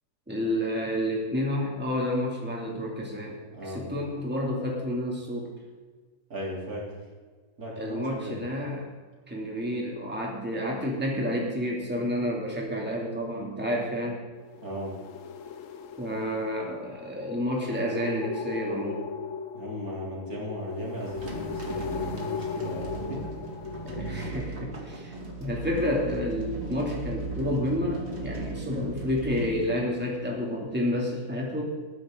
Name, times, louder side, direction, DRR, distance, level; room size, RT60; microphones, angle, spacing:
voice 1, 0.3-5.5 7.8-8.9 9.3-14.2 16.0-19.1 23.8-31.6, left 1 dB, 5° right, -2 dB, 2.6 m, -30 dB
voice 2, 3.5-3.9 6.3-6.9 7.6-8.4 14.6-14.9 19.5-23.2, equal, 70° right, -3 dB, 3.6 m, -36 dB
sound 1, 14.4-24.3, left 7 dB, 60° left, 1.0 m, -38 dB
sound 2, 21.0-30.4, right 3 dB, 45° right, 2.6 m, -37 dB
20.0 x 9.8 x 3.8 m, 1.5 s
omnidirectional pair, 1.6 m